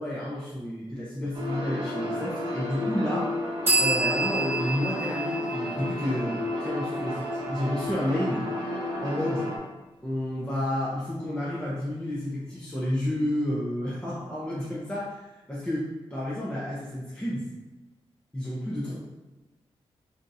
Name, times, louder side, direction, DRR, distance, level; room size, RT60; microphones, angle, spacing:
voice 1, 0.0-3.3 3.8-8.5 9.0-9.5 10.0-17.5 18.3-19.0, left 1 dB, 10° left, -8 dB, 0.6 m, -30 dB
sound 1, 1.3-9.6, left 1 dB, 45° right, 0.6 m, -32 dB
sound 2, 3.7-7.2, right 2 dB, 25° right, 1.0 m, -29 dB
3.4 x 2.7 x 2.6 m, 1.1 s
wide cardioid pair, 150°, 10 cm